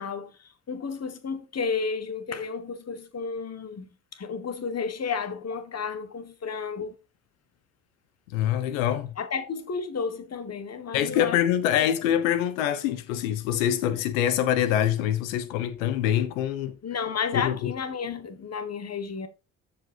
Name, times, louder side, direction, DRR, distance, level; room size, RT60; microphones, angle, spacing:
voice 1, 0.0-6.9 9.2-11.4 11.7-11.9 16.8-19.3, left 5 dB, 40° left, 1.5 m, -32 dB
voice 2, 8.3-9.1 10.9-16.8 17.3-17.7, left 11 dB, 85° left, 0.8 m, -25 dB
14.0 x 5.4 x 2.6 m
hypercardioid pair, 45°, 40 cm